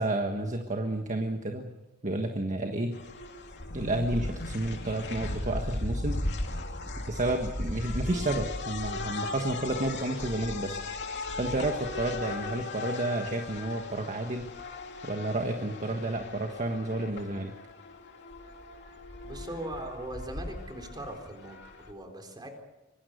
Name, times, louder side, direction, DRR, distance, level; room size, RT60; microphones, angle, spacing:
voice 1, 0.0-1.7 2.0-2.9 3.7-6.2 7.1-10.8 11.4-14.4 15.0-17.5, right 2 dB, 35° right, 4 dB, 1.5 m, -31 dB
sound 1, 2.9-21.9, left 2 dB, 55° left, 2.6 m, -37 dB
voice 2, 19.2-22.5, right 1 dB, 20° right, 4 dB, 3.9 m, -40 dB
25.0 x 20.5 x 6.6 m, 1.1 s
head